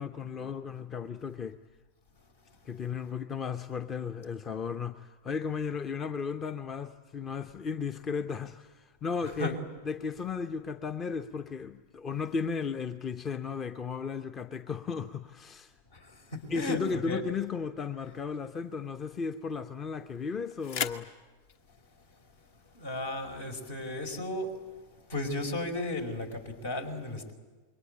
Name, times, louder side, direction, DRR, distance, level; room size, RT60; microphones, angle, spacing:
voice 1, 0.0-1.6 2.7-9.6 9.8-15.7 16.5-21.1, left 5 dB, 25° left, 0.8 m, -35 dB
voice 2, 9.2-9.6 15.9-17.2 22.7-24.6 25.1-27.3, left 2 dB, 65° left, 4.8 m, -35 dB
sound 1, 18.4-24.3, left 7 dB, 50° left, 1.2 m, -43 dB
27.5 x 23.0 x 8.9 m
figure-of-eight pair, 90°, 0 cm